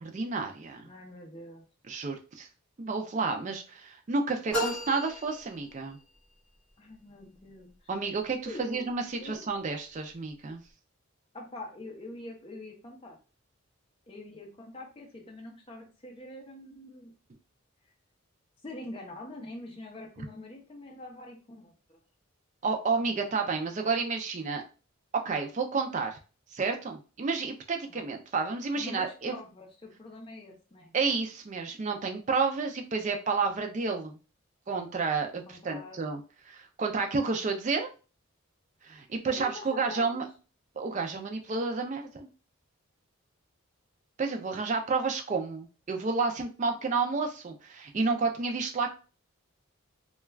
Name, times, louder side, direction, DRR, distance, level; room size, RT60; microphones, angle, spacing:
voice 1, 0.0-0.9 1.9-2.5 2.8-6.0 7.9-10.6 22.6-24.6 25.2-26.2 26.5-29.4 30.9-34.2 34.7-36.2 36.5-37.9 38.8-40.2 40.8-42.3 44.2-48.9, right 4 dB, 35° right, 4 dB, 0.4 m, -30 dB
voice 2, 0.9-1.6 6.8-7.9 8.5-8.8 9.2-9.4 11.3-13.2 14.1-17.1 18.6-22.0 27.9-28.0 28.8-30.8 35.5-36.0 39.2-40.2, left 1 dB, 25° left, 0 dB, 0.5 m, -44 dB
sound 1, 4.5-6.2, equal, 5° left, 0.8 m, -34 dB
2.3 x 2.2 x 3.2 m, 0.34 s
head